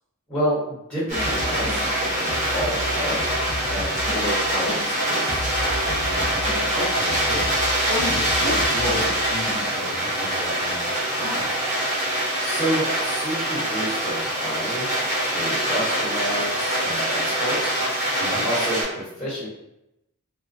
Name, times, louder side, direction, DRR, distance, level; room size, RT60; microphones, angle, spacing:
voice 1, 0.3-3.2 3.7-5.5 12.4-14.9 15.3-17.7 18.4-19.5, equal, ahead, -9 dB, 1.2 m, -29 dB
sound 1, 1.1-10.2, left 1 dB, 30° left, 0.4 m, -34 dB
sound 2, 1.1-18.8, right 1 dB, 35° right, 0.9 m, -24 dB
voice 2, 5.6-7.5 7.8-11.6 18.2-18.5, equal, 85° right, -6 dB, 1.1 m, -32 dB
2.4 x 2.3 x 2.4 m, 0.86 s
head